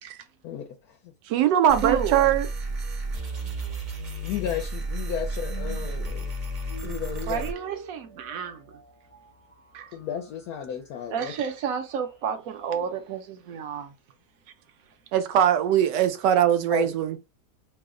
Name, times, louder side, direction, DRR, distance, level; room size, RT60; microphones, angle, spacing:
voice 1, 0.4-1.0 4.2-6.3 6.8-7.4 9.9-11.3 16.7-16.9, left 9 dB, 70° left, 1.0 m, -33 dB
voice 2, 1.3-2.5 15.1-17.2, right 10 dB, 90° right, 1.2 m, -21 dB
sound 1, 1.7-7.5, right 2 dB, 45° right, 0.6 m, -32 dB
voice 3, 1.8-2.3 7.3-8.8 9.7-10.0 11.1-13.9, right 7 dB, 65° right, 0.9 m, -31 dB
sound 2, 3.5-12.6, left 2 dB, 40° left, 0.4 m, -48 dB
3.0 x 2.1 x 3.6 m
omnidirectional pair, 1.8 m